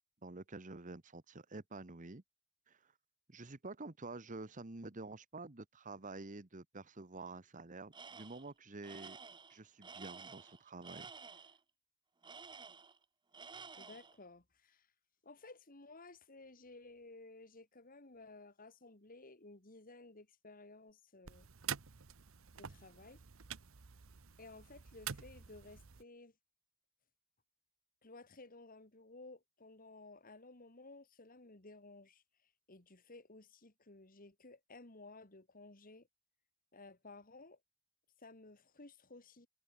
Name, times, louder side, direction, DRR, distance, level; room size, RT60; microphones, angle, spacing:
voice 1, 0.2-2.2 2.7-2.8 3.3-9.2 9.5-11.1, right 3 dB, 35° right, 1.1 m, -49 dB
Tools, 7.9-8.5 8.8-11.6 12.2-13.0 13.3-14.2, right 5 dB, 20° right, 0.7 m, -52 dB
voice 2, 13.7-14.9 15.2-21.5 22.6-23.2 24.4-26.3 28.0-32.2 32.7-36.1 36.7-37.6 38.2-39.5, left 2 dB, 40° left, 2.2 m, -56 dB
sound 1, 21.2-26.0, right 8 dB, 65° right, 0.9 m, -47 dB
head